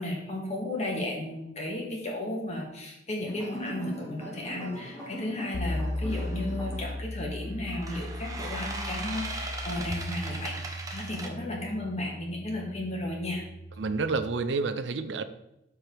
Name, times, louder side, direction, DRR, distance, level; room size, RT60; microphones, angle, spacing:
voice 1, 0.0-13.4, left 1 dB, 35° left, -1 dB, 2.0 m, -34 dB
sound 1, 3.2-6.9, right 1 dB, 10° left, 2.5 m, -41 dB
sound 2, 5.5-14.3, left 1 dB, 65° left, 0.6 m, -37 dB
sound 3, 6.1-6.4 7.6-11.3, right 2 dB, 20° right, 1.0 m, -38 dB
voice 2, 13.8-15.2, right 4 dB, 75° right, 11 dB, 0.6 m, -29 dB
12.5 x 4.6 x 3.4 m, 0.86 s
head